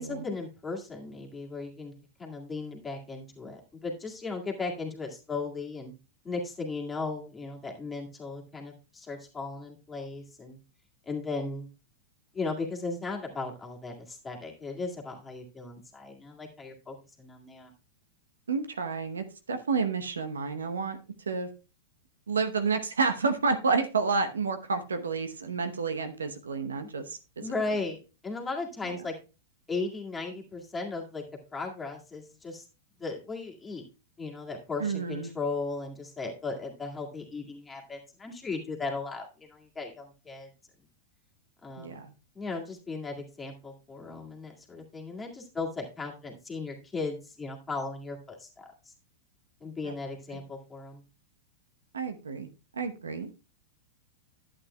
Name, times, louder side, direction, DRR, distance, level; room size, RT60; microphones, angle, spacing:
voice 1, 0.0-1.9 2.2-5.9 6.2-10.6 11.1-11.7 12.3-17.7 27.4-29.1 29.7-31.2 31.5-32.6 33.0-33.8 34.2-40.5 41.6-42.0 42.4-48.9 49.6-51.0, left 3 dB, 15° left, 0 dB, 2.0 m, -36 dB
voice 2, 18.5-21.0 21.3-21.5 22.3-27.8 28.9-29.0 34.8-35.3 41.8-42.1 49.8-49.9 50.3-50.4 51.9-52.5 52.7-53.3, right 4 dB, 85° right, 8 dB, 0.8 m, -30 dB
11.5 x 8.5 x 2.2 m, 0.30 s
hypercardioid pair, 105°, 0 cm